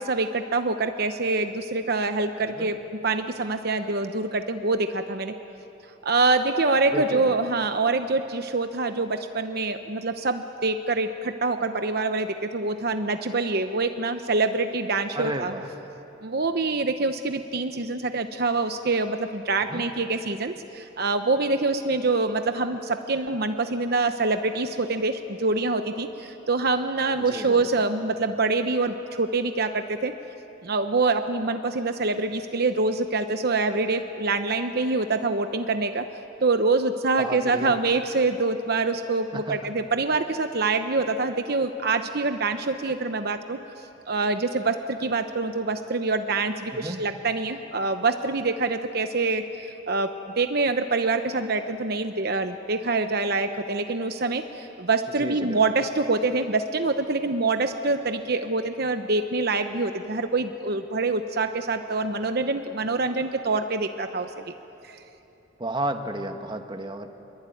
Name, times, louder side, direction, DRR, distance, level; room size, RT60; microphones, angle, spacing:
voice 1, 0.0-5.3 6.0-15.5 16.2-30.1 30.6-36.0 36.4-43.6 44.1-64.4 64.8-65.0, right 3 dB, 50° right, 7 dB, 0.9 m, -25 dB
voice 2, 6.9-7.4 15.1-15.7 19.7-19.8 27.2-27.7 37.2-37.7 39.3-39.5 46.7-47.0 55.2-55.6 65.6-67.1, right 1 dB, 25° right, 6 dB, 1.5 m, -32 dB
27.5 x 23.0 x 9.3 m, 3.0 s
head